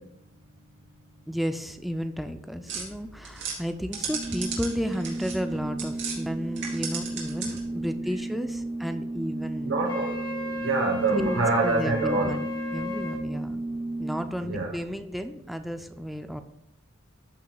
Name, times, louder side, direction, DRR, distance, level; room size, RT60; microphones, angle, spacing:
voice 1, 1.3-9.7 11.1-13.6 14.0-16.4, equal, ahead, 7 dB, 0.4 m, -33 dB
sound 1, 2.7-6.2 6.5-7.8, right 5 dB, 65° right, 2.8 m, -36 dB
Organ, 3.9-14.6, right 2 dB, 35° right, 2.4 m, -34 dB
voice 2, 9.6-10.2 10.6-12.3 14.4-14.7, right 3 dB, 85° right, 0 dB, 1.2 m, -25 dB
Wind instrument woodwind instrument, 9.8-13.2, left 4 dB, 25° left, 2.3 m, -36 dB
13.0 x 6.1 x 2.3 m, 0.82 s
head